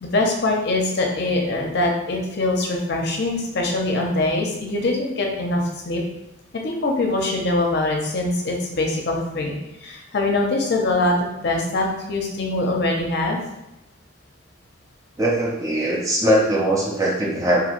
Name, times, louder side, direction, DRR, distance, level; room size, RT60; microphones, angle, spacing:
voice 1, 0.0-6.0 6.6-9.5 9.8-13.4, left 2 dB, 55° left, 1 dB, 0.5 m, -23 dB
voice 2, 15.2-17.6, right 1 dB, 15° right, -2 dB, 0.4 m, -20 dB
3.0 x 2.5 x 2.5 m, 0.94 s
head